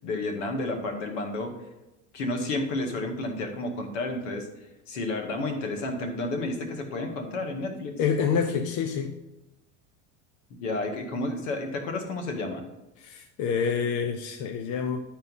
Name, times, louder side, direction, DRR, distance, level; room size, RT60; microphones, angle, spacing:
voice 1, 0.0-1.5 2.1-4.5 4.9-7.9 10.5-12.6, left 2 dB, 80° left, 4 dB, 2.0 m, -31 dB
voice 2, 8.0-9.1 13.0-15.0, left 6 dB, 55° left, 6 dB, 0.9 m, -27 dB
11.0 x 4.3 x 5.5 m, 0.99 s
supercardioid pair, 100°, 37 cm